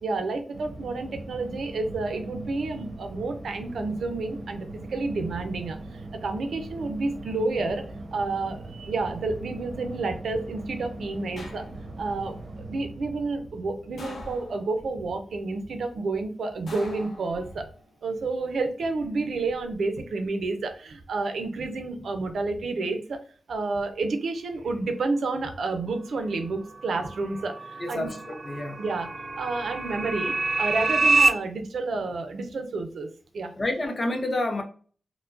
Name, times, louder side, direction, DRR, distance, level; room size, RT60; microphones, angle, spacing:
voice 1, 0.0-7.8 8.1-11.7 12.0-17.7 18.0-23.2 23.5-28.1 28.8-29.1 29.4-33.1 33.3-33.5, right 3 dB, 80° right, 0.6 m, -30 dB
sound 1, 0.5-14.9, right 2 dB, 65° right, 0.9 m, -41 dB
sound 2, 11.4-12.1 14.0-14.9 16.7-17.8 19.2-19.7, left 2 dB, 85° left, 0.8 m, -44 dB
sound 3, 27.1-31.3, right 3 dB, 30° right, 0.3 m, -26 dB
voice 2, 27.8-28.8 33.6-34.6, left 1 dB, 30° left, 0.6 m, -29 dB
4.5 x 2.2 x 2.6 m
wide cardioid pair, 160°, 0 cm